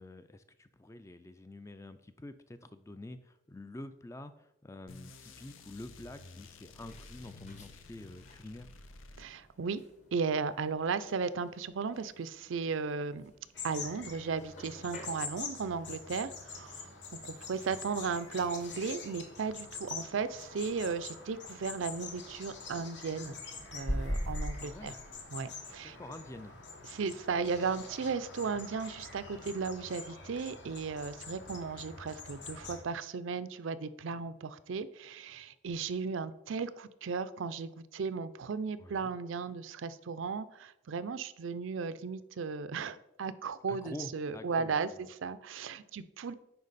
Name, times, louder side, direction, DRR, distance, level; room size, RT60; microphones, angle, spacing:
voice 1, 0.0-8.7 24.6-25.0 25.8-26.6 38.8-39.1 43.7-44.8, left 1 dB, 15° left, 11 dB, 0.3 m, -47 dB
sound 1, 4.9-9.7, left 3 dB, 80° left, 0.7 m, -52 dB
sound 2, 6.1-25.2, equal, 35° left, 1.1 m, -46 dB
voice 2, 9.2-9.8 10.1-13.3 13.6-23.4 23.7-25.0 25.3-26.0 26.8-46.3, right 5 dB, 75° right, 14 dB, 0.4 m, -36 dB
sound 3, 13.5-32.8, left 5 dB, 60° left, 1.3 m, -46 dB
10.5 x 4.5 x 4.1 m, 0.85 s
head